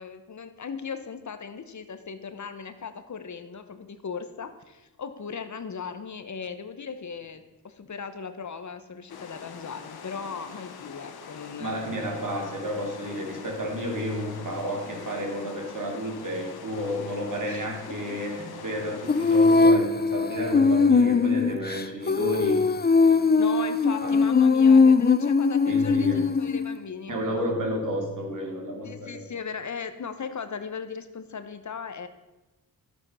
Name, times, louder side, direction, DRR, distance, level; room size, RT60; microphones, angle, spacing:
voice 1, 0.0-12.0 17.5-18.2 23.4-27.5 28.8-32.1, left 6 dB, 50° left, 10 dB, 1.0 m, -38 dB
sound 1, 9.1-19.7, left 6 dB, 85° left, 1.1 m, -43 dB
voice 2, 11.6-22.7 23.0-23.4 24.0-24.1 25.6-26.2 27.1-29.2, equal, 60° right, 1 dB, 2.9 m, -31 dB
Female singing, 19.1-26.8, left 4 dB, 25° left, 0.6 m, -20 dB
11.5 x 8.3 x 5.5 m, 1.1 s
cardioid pair, 65°, 36 cm